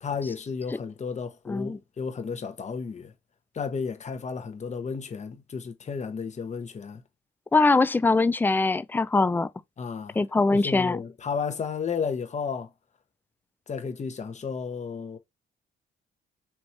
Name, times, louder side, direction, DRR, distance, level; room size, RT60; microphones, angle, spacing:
voice 1, 0.0-3.1 3.5-7.0 9.8-10.2 10.5-12.7 13.7-15.2, left 5 dB, 35° left, 0.9 m, -33 dB
voice 2, 1.5-1.8 7.5-9.5 10.2-11.0, left 3 dB, 10° left, 0.3 m, -22 dB
4.3 x 3.1 x 3.2 m
cardioid pair, 90°, 20 cm